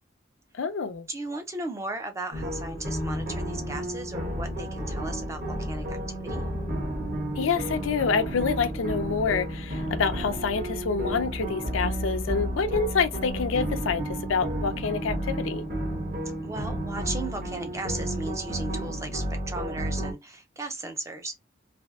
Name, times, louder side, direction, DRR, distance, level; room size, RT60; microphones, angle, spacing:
voice 1, 0.5-1.1 7.3-15.6, left 5 dB, 85° left, 0.5 m, -27 dB
voice 2, 1.1-6.4 16.4-21.4, right 2 dB, 15° right, 0.4 m, -36 dB
sound 1, 2.3-20.1, right 1 dB, 45° right, 1.1 m, -32 dB
3.4 x 2.6 x 2.3 m
head